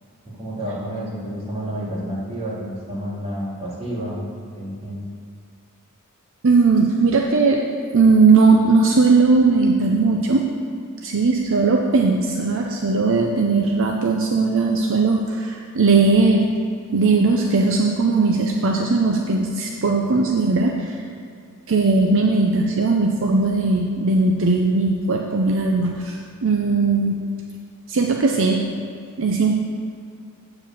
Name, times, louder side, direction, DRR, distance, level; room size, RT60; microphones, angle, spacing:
voice 1, 0.2-4.2 4.6-5.0, equal, 30° right, -6 dB, 2.4 m, -30 dB
voice 2, 6.4-7.6 7.9-10.4 11.0-16.5 16.9-21.0 21.7-27.2 27.9-28.6 29.2-29.6, right 3 dB, 60° right, 1 dB, 0.6 m, -18 dB
8.5 x 4.9 x 7.3 m, 2.3 s
head